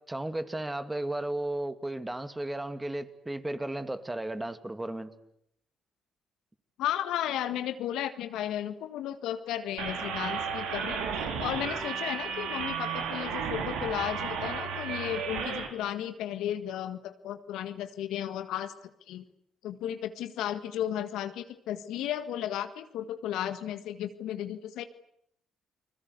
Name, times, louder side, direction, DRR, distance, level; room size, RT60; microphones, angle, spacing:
voice 1, 0.1-5.1, right 1 dB, 15° right, 2.5 m, -34 dB
voice 2, 6.8-11.0 11.4-18.7 19.1-19.2 19.6-24.8, left 11 dB, 75° left, 1.6 m, -34 dB
sound 1, 9.8-15.7, right 6 dB, 85° right, 4.1 m, -33 dB
30.0 x 20.5 x 8.3 m
hypercardioid pair, 55°, 0 cm